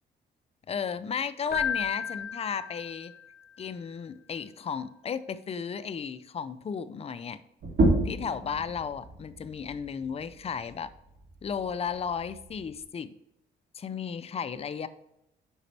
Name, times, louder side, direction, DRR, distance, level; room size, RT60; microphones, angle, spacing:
voice 1, 0.7-3.1 3.6-7.4 8.0-10.9 11.4-13.1 13.7-14.9, left 6 dB, 30° left, 13 dB, 0.5 m, -34 dB
Keyboard (musical), 1.5-3.3, left 7 dB, 50° left, 1.0 m, -33 dB
sound 1, 7.6-12.8, right 2 dB, 60° right, 2.3 m, -31 dB
7.2 x 5.0 x 3.3 m, 0.86 s
cardioid pair, 90°, 20 cm